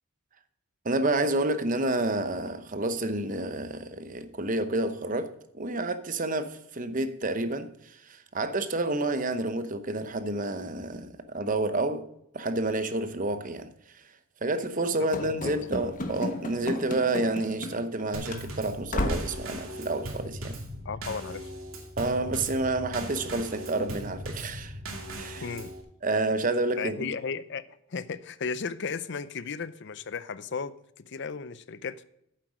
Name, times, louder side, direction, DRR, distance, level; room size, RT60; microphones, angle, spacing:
voice 1, 0.8-12.1 12.3-13.7 14.4-20.6 22.0-24.8 25.1-25.5 26.0-27.1, right 2 dB, 40° right, 0.8 m, -29 dB
Run / Slam, 15.1-18.0 18.3-18.4 18.9-19.4, left 1 dB, 40° left, 1.2 m, -33 dB
voice 2, 15.2-15.5 20.8-21.5 25.4-25.7 26.8-27.6 27.9-30.7 31.1-32.0, left 5 dB, 55° left, 0.5 m, -35 dB
Drum kit / Snare drum / Bass drum, 18.1-25.8, right 1 dB, 80° right, 2.4 m, -39 dB
9.2 x 7.6 x 5.0 m
head